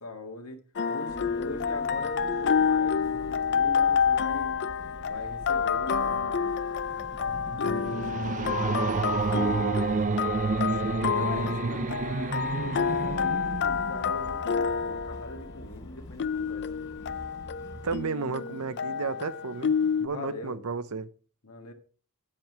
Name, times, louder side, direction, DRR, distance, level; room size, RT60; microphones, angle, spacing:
voice 1, 0.0-4.5 5.1-6.6 7.7-9.0 10.8-16.8 20.1-20.6 21.4-21.7, left 2 dB, 85° left, 1.8 m, -42 dB
sound 1, 0.8-20.1, left 6 dB, 50° left, 0.5 m, -29 dB
sound 2, 1.1-18.0, equal, 15° left, 0.8 m, -46 dB
sound 3, 6.9-14.3, right 4 dB, 35° right, 0.4 m, -30 dB
voice 2, 10.5-11.0 17.8-19.7 20.0-21.1, right 4 dB, 80° right, 0.8 m, -33 dB
9.3 x 7.6 x 4.7 m
head